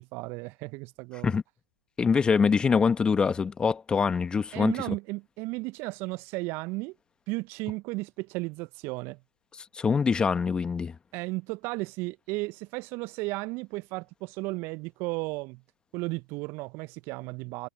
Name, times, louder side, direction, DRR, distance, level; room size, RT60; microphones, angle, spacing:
voice 1, 0.0-1.4 4.5-6.9 7.3-9.2 11.1-15.6 15.9-17.7, right 24 dB, 35° right, 0.8 m, -34 dB
voice 2, 2.0-4.8 9.7-10.9, left 5 dB, 15° left, 1.5 m, -24 dB
figure-of-eight pair, 115°, 7 cm